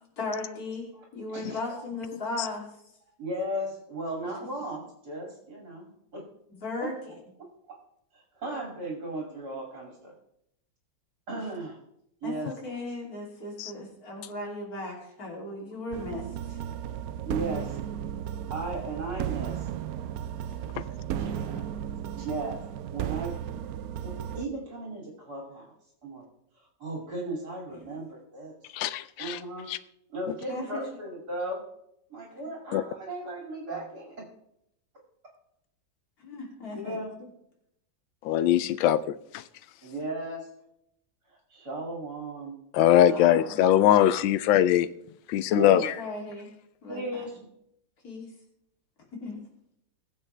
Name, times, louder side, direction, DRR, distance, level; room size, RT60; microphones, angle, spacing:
voice 1, 0.2-0.9 1.1-2.7 6.6-6.9 12.2-16.6 20.6-20.7 21.2-21.7 30.5-30.8 36.2-37.0 43.0-43.9 45.6-46.5 46.8-47.3 48.0-48.3 49.2-49.4, left 2 dB, 50° left, -2 dB, 3.4 m, -37 dB
voice 2, 0.9-1.6 3.2-6.2 6.8-6.9 7.4-7.8 8.1-10.1 11.3-11.8 12.2-12.5 17.2-17.8 18.5-19.7 20.7-20.8 21.1-21.3 22.2-22.6 22.9-23.3 24.0-25.7 26.0-26.3 26.8-28.5 29.2-29.7 30.1-31.6 32.1-34.1 36.7-37.1 39.8-40.5 41.3-42.5 45.5-45.9 46.9-47.4, right 2 dB, 55° right, -2 dB, 3.0 m, -36 dB
sound 1, 15.9-24.4, right 10 dB, 75° right, 0.8 m, -34 dB
voice 3, 28.7-29.4 29.7-29.8 32.7-32.8 38.2-39.0 39.3-39.4 42.7-44.9 45.3-45.9, left 11 dB, 85° left, 15 dB, 1.4 m, -21 dB
22.0 x 7.5 x 3.3 m, 0.76 s
omnidirectional pair, 2.1 m